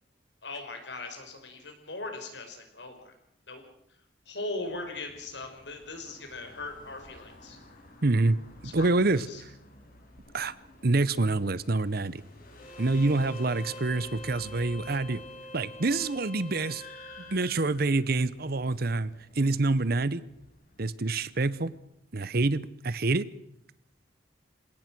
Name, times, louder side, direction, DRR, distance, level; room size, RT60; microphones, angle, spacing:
voice 1, 0.4-3.1 3.5-3.6 4.3-7.6 8.6-8.9 9.2-9.4, left 2 dB, 75° left, 5 dB, 5.3 m, -39 dB
sound 1, 4.6-21.8, left 1 dB, 55° left, 5.9 m, -53 dB
voice 2, 8.0-8.4 8.6-9.3 10.3-10.5 10.8-12.2 12.8-15.2 15.5-16.8 17.3-20.2 20.8-21.7 22.1-23.3, right 2 dB, 60° right, 17 dB, 0.9 m, -26 dB
Bowed string instrument, 12.6-17.4, left 1 dB, 35° left, 2.8 m, -45 dB
27.5 x 17.5 x 6.2 m, 0.76 s
head